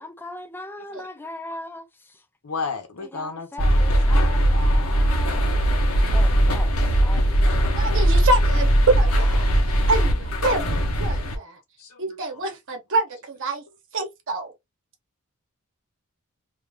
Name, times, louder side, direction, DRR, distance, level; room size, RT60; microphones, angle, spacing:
voice 1, 0.0-1.9 3.1-5.5 6.1-6.7 7.0-7.4, left 2 dB, 10° left, 0.4 m, -39 dB
voice 2, 0.8-1.1 2.4-5.3 11.3-11.4 11.8-12.2, left 4 dB, 85° left, 1.1 m, -34 dB
sound 1, 3.6-11.4, right 1 dB, 70° left, 1.1 m, -20 dB
voice 3, 5.0-6.0 7.7-9.5 9.9-11.6 12.0-13.6 13.9-14.5, right 2 dB, 60° right, 0.9 m, -26 dB
2.7 x 2.5 x 3.4 m
head